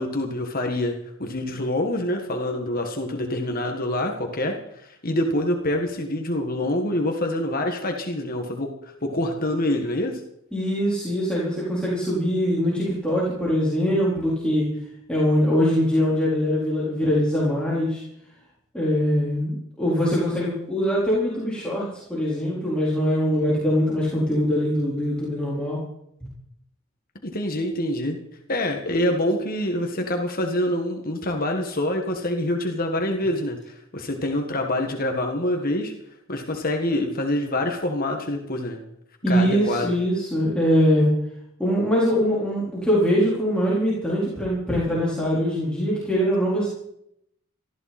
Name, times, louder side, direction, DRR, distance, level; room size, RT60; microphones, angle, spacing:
voice 1, 0.0-10.2 27.2-28.2 28.5-35.9 36.3-38.8 39.3-39.9, left 1 dB, 45° left, 3 dB, 1.8 m, -26 dB
voice 2, 10.5-14.7 15.1-18.0 18.7-25.8 39.2-41.1 41.6-46.7, equal, 5° left, -8 dB, 4.4 m, -22 dB
19.5 x 14.5 x 4.4 m, 0.75 s
head